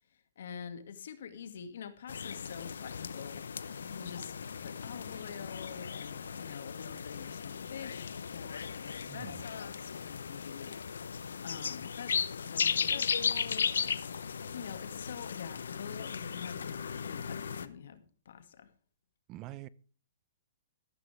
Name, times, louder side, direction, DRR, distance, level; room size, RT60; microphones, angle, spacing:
voice 1, 0.1-14.1 14.4-18.7, left 7 dB, 70° left, 2.2 m, -46 dB
sound 1, 2.1-17.7, left 6 dB, 85° left, 1.0 m, -36 dB
voice 2, 9.1-9.4 19.3-19.7, right 16 dB, 30° right, 0.6 m, -45 dB
14.0 x 13.0 x 3.5 m
hypercardioid pair, 150°, 0 cm